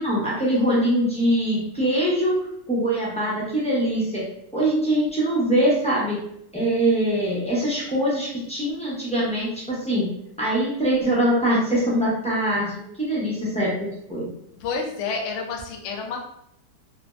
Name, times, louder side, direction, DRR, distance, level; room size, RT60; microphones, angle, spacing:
voice 1, 0.0-2.4 2.7-4.2 4.5-6.2 6.5-10.1 10.4-14.3, right 1 dB, 10° left, -8 dB, 0.3 m, -23 dB
voice 2, 14.6-16.2, left 4 dB, 70° left, 1 dB, 0.7 m, -29 dB
3.2 x 2.0 x 2.4 m, 0.75 s
omnidirectional pair, 1.6 m